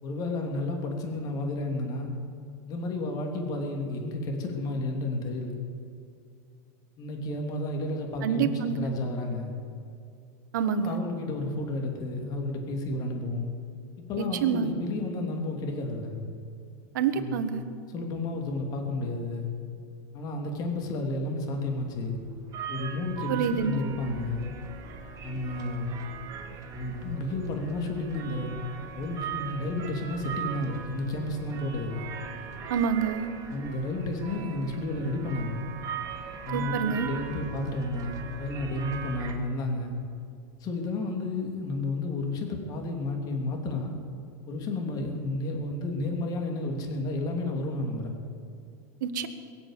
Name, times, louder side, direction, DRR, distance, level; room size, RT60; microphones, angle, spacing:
voice 1, 0.0-2.1 2.6-5.6 7.0-9.5 10.6-13.5 14.1-16.1 17.1-17.4 17.9-19.5 20.1-22.2 22.7-24.4 25.2-26.0 26.7-28.5 28.9-32.0 33.5-35.6 36.4-40.0 40.6-43.9 44.5-48.1, left 2 dB, 40° left, 2 dB, 2.9 m, -31 dB
voice 2, 8.2-8.9 10.5-11.0 14.2-14.7 16.9-17.6 23.3-23.8 32.7-33.3 36.5-37.1 49.0-49.3, right 7 dB, 85° right, 9 dB, 1.3 m, -27 dB
sound 1, 21.5-39.3, right 7 dB, 35° right, 1.9 m, -40 dB
22.0 x 7.4 x 8.3 m, 2.4 s
supercardioid pair, 135°, 10 cm